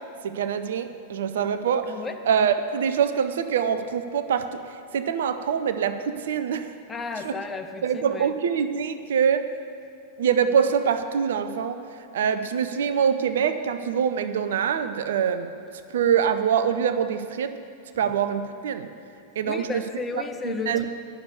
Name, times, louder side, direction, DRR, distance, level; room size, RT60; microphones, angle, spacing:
voice 1, 0.2-6.7 7.2-7.4 7.8-9.4 10.2-15.5 15.9-17.5 18.0-18.9 19.4-19.8 20.1-20.9, right 7 dB, 60° right, 10 dB, 0.5 m, -25 dB
voice 2, 6.9-8.3 19.4-20.9, left 4 dB, 15° left, 6 dB, 0.7 m, -33 dB
10.0 x 6.8 x 6.9 m, 2.5 s
figure-of-eight pair, 90°, 0 cm